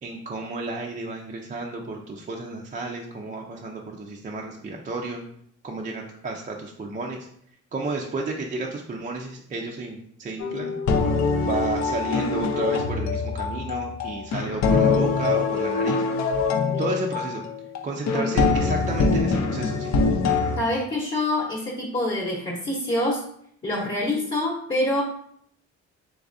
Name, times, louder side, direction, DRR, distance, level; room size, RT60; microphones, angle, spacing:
voice 1, 0.0-5.2 5.6-7.3 7.7-10.7 11.4-16.0 16.8-17.4 17.8-20.0, right 3 dB, 25° right, 0 dB, 0.4 m, -32 dB
sound 1, 10.4-20.6, left 4 dB, 65° left, 0.5 m, -24 dB
voice 2, 20.6-23.2 23.6-25.0, left 1 dB, 25° left, -4 dB, 0.9 m, -26 dB
3.5 x 3.2 x 2.5 m, 0.66 s
cardioid pair, 90°, 30 cm